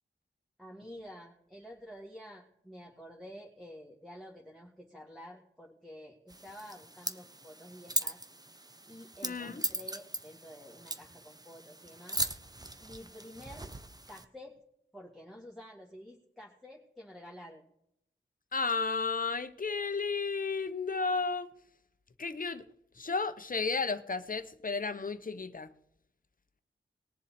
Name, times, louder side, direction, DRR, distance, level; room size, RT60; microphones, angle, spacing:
voice 1, 0.6-8.2 8.9-12.2 12.8-13.7 14.1-14.6 14.9-17.6, equal, ahead, 2.0 m, -50 dB
sound 1, 6.3-14.3, right 2 dB, 20° right, 0.9 m, -39 dB
voice 2, 9.2-9.6 18.5-21.5 22.2-22.6 22.9-25.7, left 4 dB, 45° left, 0.9 m, -33 dB
20.0 x 7.2 x 4.3 m
wide cardioid pair, 85°, 20 cm